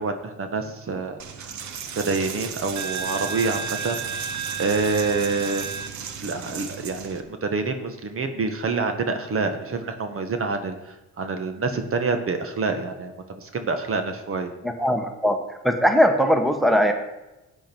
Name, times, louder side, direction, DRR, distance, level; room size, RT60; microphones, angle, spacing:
voice 1, 0.0-1.5 2.0-4.0 4.6-5.8 6.2-14.5, right 4 dB, 45° right, 7 dB, 1.5 m, -27 dB
Coin (dropping), 1.2-7.2, right 6 dB, 70° right, 1.2 m, -32 dB
voice 2, 14.6-15.4 15.6-16.9, equal, ahead, 6 dB, 1.3 m, -20 dB
13.0 x 9.0 x 4.6 m, 1.0 s
cardioid pair, 90°, 30 cm